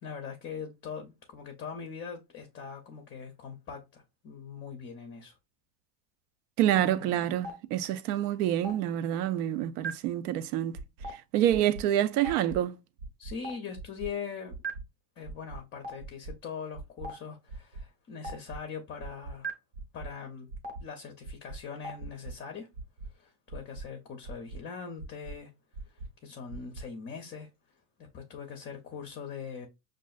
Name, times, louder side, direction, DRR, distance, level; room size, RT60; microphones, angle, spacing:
voice 1, 0.0-5.4 6.7-7.2 13.2-14.6 15.2-19.5 19.9-20.5 20.8-22.7 23.1-25.5 25.8-27.5 28.0-29.7, left 6 dB, 25° left, 0.5 m, -42 dB
voice 2, 6.6-10.8 11.1-12.7, right 12 dB, 70° right, 0.6 m, -27 dB
Stream, 7.4-7.5 8.6-8.7 9.8-9.9 11.0-11.1 12.2-12.3 13.4-13.5 14.6-14.7 15.8-15.9 17.0-17.1 18.2-18.3 19.4-19.5 20.6-20.7 21.8-21.9, right 3 dB, 20° right, 0.8 m, -34 dB
sound 1, 10.7-11.1 11.5-11.8 12.2-12.6 13.0-13.3 13.7-14.1 14.5-14.8 15.2-15.6 16.0-16.3 16.7-17.1 17.5-17.8 18.2-18.6 19.0-19.3 19.7-20.1 20.5-20.8 21.2-21.6 22.0-22.3 22.7-23.1 23.5-23.8 24.2-24.6 25.0-25.3 25.7-26.1 26.5-26.8, right 3 dB, 90° right, 1.1 m, -41 dB
5.3 x 2.5 x 2.3 m
supercardioid pair, 125°, 49 cm